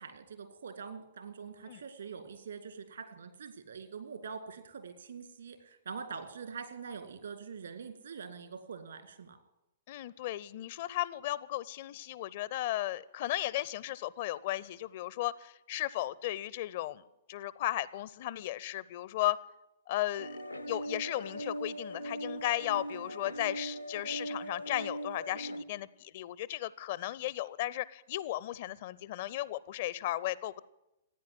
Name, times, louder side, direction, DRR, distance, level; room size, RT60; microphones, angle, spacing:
voice 1, 0.0-9.4, right 6 dB, 65° right, 8 dB, 2.2 m, -44 dB
voice 2, 9.9-17.0 17.3-19.4 19.9-20.4 20.7-30.6, left 15 dB, 45° left, 20 dB, 0.5 m, -35 dB
sound 1, 20.2-25.6, equal, 85° left, 0.7 m, -40 dB
15.5 x 9.6 x 9.4 m, 0.91 s
figure-of-eight pair, 110°, 0 cm